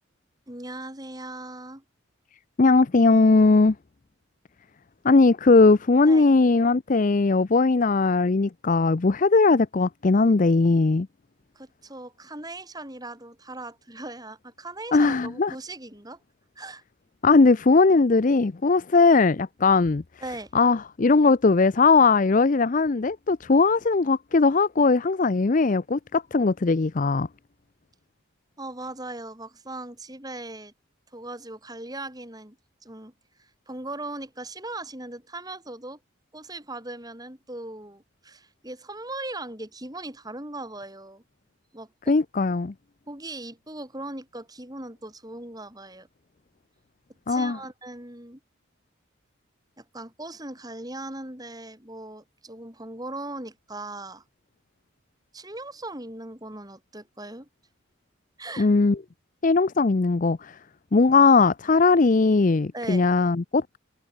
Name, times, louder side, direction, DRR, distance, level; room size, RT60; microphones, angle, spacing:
voice 1, 0.5-1.8 6.0-6.2 11.6-16.2 16.6-16.8 20.2-20.5 28.6-30.7 31.1-32.6 32.8-33.1 33.4-36.0 36.3-41.2 41.7-42.1 43.1-46.1 47.3-48.4 49.8-54.2 55.3-57.5 58.4-58.7 62.7-63.1, right 2 dB, 20° right, 5.2 m, -39 dB
voice 2, 2.6-3.8 5.0-11.1 14.9-15.5 17.2-20.0 20.5-27.3 42.1-42.7 47.3-47.6 58.6-59.0 59.4-60.6 60.9-63.8, left 3 dB, 40° left, 0.5 m, -19 dB
head